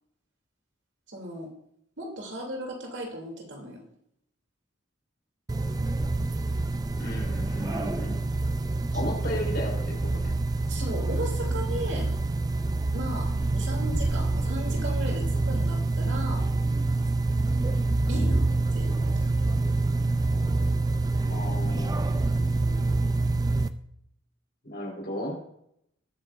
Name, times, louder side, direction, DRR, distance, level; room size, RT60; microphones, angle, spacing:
voice 1, 1.1-1.5 2.0-3.8 10.7-12.1 12.9-16.5 18.1-18.4 18.7-19.4 22.6-22.9, right 1 dB, 65° right, 0 dB, 3.0 m, -36 dB
sound 1, 5.5-23.7, right 2 dB, 20° right, 0.4 m, -26 dB
voice 2, 7.0-8.2 8.9-10.3 21.2-22.5 24.6-25.4, equal, 50° left, -1 dB, 4.4 m, -35 dB
19.5 x 8.9 x 2.6 m, 0.73 s
head